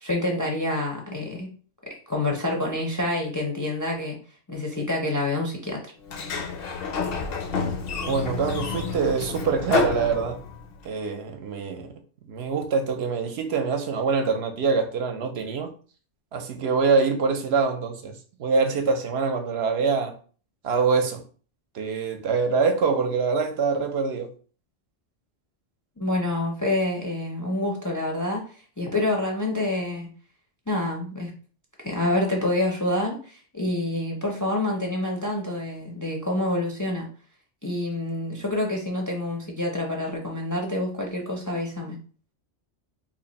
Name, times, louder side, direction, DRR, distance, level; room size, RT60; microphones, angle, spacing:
voice 1, 0.0-1.5 2.1-4.2 4.5-5.9 26.0-28.5 28.8-30.1 30.7-31.3 31.8-37.1 37.6-42.0, left 1 dB, 25° left, 0.4 m, -27 dB
Sliding door, 6.0-10.8, left 5 dB, 65° left, 0.8 m, -29 dB
voice 2, 8.0-10.4 10.8-11.9 12.3-15.7 16.3-18.1 18.4-20.1 20.6-21.2 21.7-24.3, right 5 dB, 75° right, 0.8 m, -24 dB
2.9 x 2.5 x 4.0 m
omnidirectional pair, 1.1 m